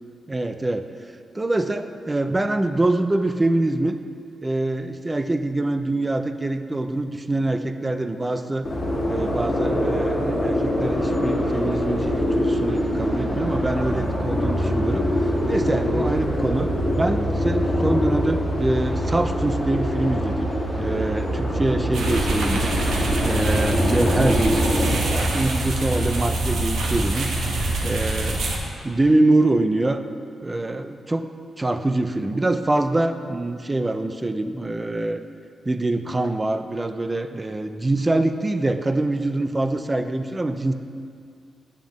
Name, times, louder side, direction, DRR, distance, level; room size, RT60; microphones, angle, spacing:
voice 1, 0.3-0.9 1.3-4.0 4.4-8.7 9.1-15.1 15.5-16.7 17.0-20.5 20.8-22.7 23.2-27.3 27.8-28.4 28.8-30.0 30.4-31.3 31.6-35.2 35.7-40.7, right 2 dB, 15° right, 9 dB, 0.3 m, -24 dB
sound 1, 8.6-24.9, equal, 25° left, 1.7 m, -24 dB
sound 2, 21.9-28.6, right 2 dB, 85° right, 0.9 m, -25 dB
8.9 x 7.3 x 3.1 m, 2.3 s
wide cardioid pair, 155°, 0 cm